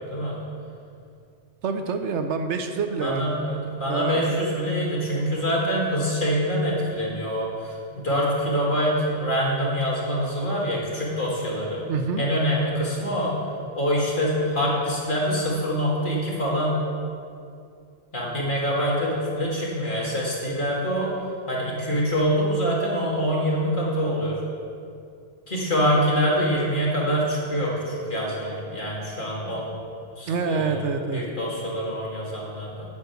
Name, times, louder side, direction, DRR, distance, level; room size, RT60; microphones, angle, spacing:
voice 1, 1.6-3.4 3.9-4.3 11.9-12.2 30.3-31.2, right 5 dB, 75° right, 7 dB, 1.0 m, -27 dB
voice 2, 3.0-11.8 12.2-13.3 13.7-16.8 18.1-21.2 21.5-24.4 25.5-29.7 30.2-30.8 31.1-32.8, equal, 45° left, -5 dB, 2.4 m, -25 dB
8.4 x 6.9 x 8.1 m, 2.5 s
omnidirectional pair, 1.2 m